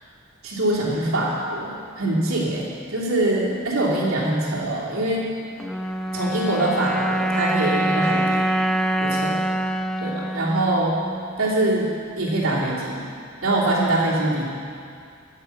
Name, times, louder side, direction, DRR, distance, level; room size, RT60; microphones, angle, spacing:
voice 1, 0.4-5.3 6.1-8.4 9.0-9.4 10.0-11.0 11.4-11.9 12.2-13.0 13.4-14.5, right 1 dB, 80° right, -5 dB, 3.2 m, -23 dB
sound 1, 5.6-12.0, right 1 dB, ahead, 0.5 m, -25 dB
22.5 x 8.7 x 5.8 m, 2.3 s
head